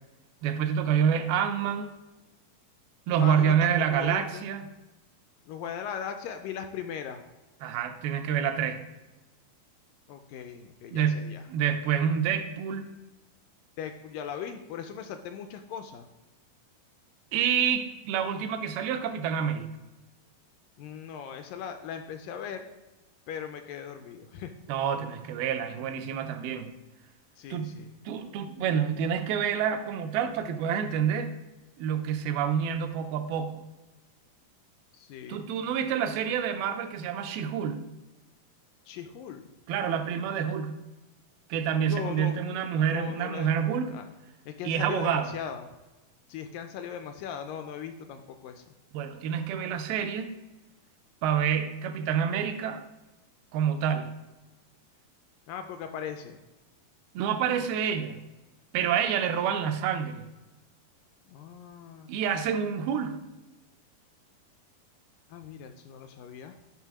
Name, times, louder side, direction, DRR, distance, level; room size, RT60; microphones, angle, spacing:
voice 1, 0.4-1.9 3.1-4.7 7.6-8.8 10.9-12.9 17.3-19.7 24.7-26.7 27.5-27.7 28.1-31.3 31.8-33.6 35.3-37.8 39.7-40.8 41.5-43.9 44.6-45.3 48.9-50.3 51.2-52.8 53.5-54.1 57.1-58.2 58.7-60.3 62.1-63.2, right 8 dB, 90° right, 6 dB, 2.6 m, -28 dB
voice 2, 3.2-4.5 5.5-7.2 10.1-11.4 13.8-16.1 20.8-22.7 23.3-24.5 27.4-27.9 34.9-35.4 38.9-39.5 41.9-42.4 42.9-43.5 43.9-44.1 44.5-45.7 46.3-48.7 55.5-56.4 61.3-62.1 65.3-66.5, left 8 dB, 80° left, 7 dB, 2.0 m, -39 dB
10.0 x 3.5 x 6.1 m, 1.1 s
omnidirectional pair, 4.3 m